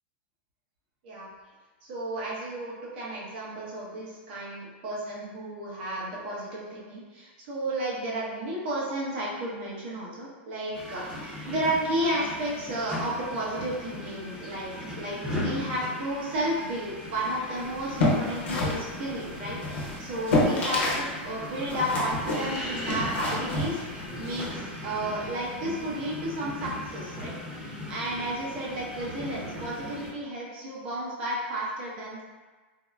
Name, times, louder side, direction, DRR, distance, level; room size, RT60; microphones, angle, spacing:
voice 1, 1.8-14.7 15.0-32.2, right 1 dB, 65° right, -5 dB, 0.9 m, -32 dB
sound 1, 10.7-30.1, left 1 dB, 15° right, 0.9 m, -38 dB
sound 2, 17.7-21.1 21.3-24.5, left 2 dB, 85° left, 0.8 m, -28 dB
3.8 x 2.1 x 2.3 m, 1.3 s
hypercardioid pair, 120°, 6 cm